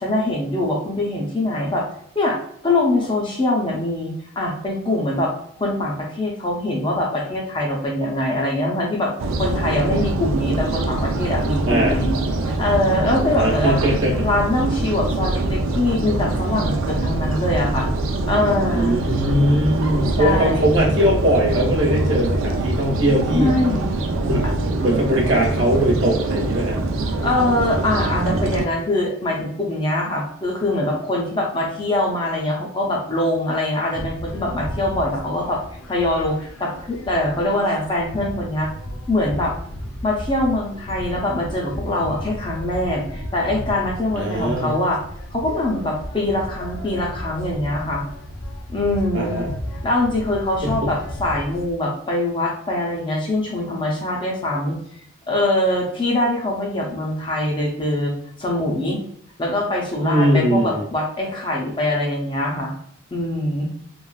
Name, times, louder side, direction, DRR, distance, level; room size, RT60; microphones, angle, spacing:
voice 1, 0.0-1.9 2.2-13.8 14.2-17.9 18.2-19.0 20.2-20.8 23.3-24.0 27.2-35.6 35.9-38.7 39.1-39.5 40.0-45.0 45.3-48.0 48.7-49.4 49.8-54.8 55.3-58.1 58.4-59.0 59.4-62.7 63.1-63.7, left 1 dB, 25° left, -1 dB, 0.5 m, -23 dB
sound 1, 9.2-28.7, right 2 dB, 85° right, 0.4 m, -23 dB
voice 2, 11.7-12.0 13.4-14.3 18.7-23.5 24.2-24.4 24.8-26.8 44.1-44.7 49.1-49.5 50.6-50.9 60.0-60.8, equal, 70° right, -3 dB, 0.9 m, -20 dB
sound 2, 33.9-51.7, equal, 85° left, 0.5 m, -34 dB
3.1 x 2.4 x 2.3 m, 0.68 s
head